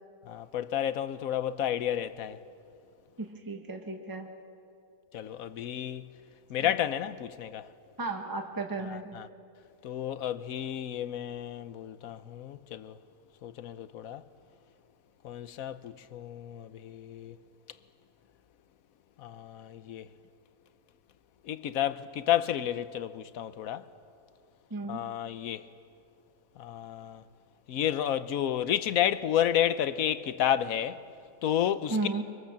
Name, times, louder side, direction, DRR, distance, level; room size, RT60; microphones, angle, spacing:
voice 1, 0.3-2.4 5.1-6.1 6.5-7.7 8.9-9.3 9.8-13.0 13.4-14.2 15.2-17.4 19.2-20.1 21.4-23.8 24.9-25.6 26.6-27.2 27.7-31.0 31.4-32.0, left 10 dB, 75° left, 1.2 m, -31 dB
voice 2, 3.2-4.3 6.6-6.7 8.0-9.2 24.7-25.0 31.9-32.2, right 3 dB, 15° right, 1.5 m, -34 dB
24.0 x 24.0 x 7.3 m
omnidirectional pair, 1.5 m